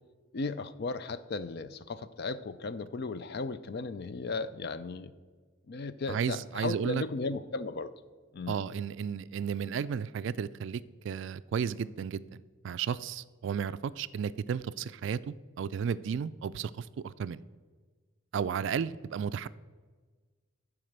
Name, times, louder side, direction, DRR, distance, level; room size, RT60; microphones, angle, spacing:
voice 1, 0.3-5.1 5.7-7.9 8.3-8.6, left 3 dB, 50° left, 13 dB, 0.4 m, -36 dB
voice 2, 6.1-7.0 8.5-12.4 12.6-17.4 18.3-19.5, right 7 dB, 60° right, 16 dB, 0.3 m, -33 dB
11.0 x 4.9 x 6.6 m, 1.4 s
head